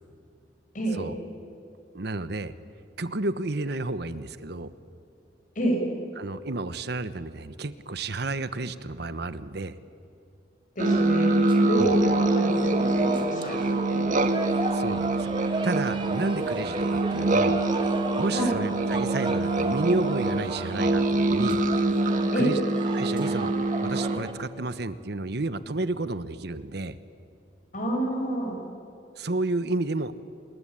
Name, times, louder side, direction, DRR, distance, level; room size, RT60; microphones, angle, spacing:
voice 1, 1.9-2.5 3.0-4.7 6.2-9.7 11.8-12.0 14.7-17.6 18.2-21.6 22.3-22.6 22.9-23.5 23.8-27.0 29.2-30.1, right 2 dB, 65° right, 13 dB, 1.1 m, -31 dB
voice 2, 10.8-14.0 18.3-18.6 22.3-22.5 27.7-28.6, right 1 dB, 45° left, 1 dB, 7.1 m, -28 dB
sound 1, 10.8-24.3, right 1 dB, 25° right, 1.6 m, -34 dB
sound 2, 10.8-24.2, right 2 dB, 45° right, 1.6 m, -25 dB
28.0 x 21.0 x 8.9 m, 2.6 s
head